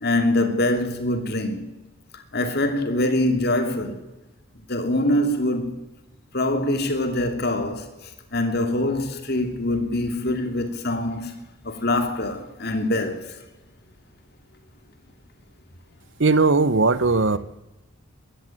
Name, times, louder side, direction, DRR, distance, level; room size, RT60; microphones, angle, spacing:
voice 1, 0.0-1.7 2.3-4.0 4.7-5.8 6.3-11.4 11.6-13.4, left 1 dB, 50° left, 2.7 m, -24 dB
voice 2, 16.2-17.4, right 3 dB, 60° right, 1.0 m, -18 dB
22.0 x 14.0 x 9.2 m
head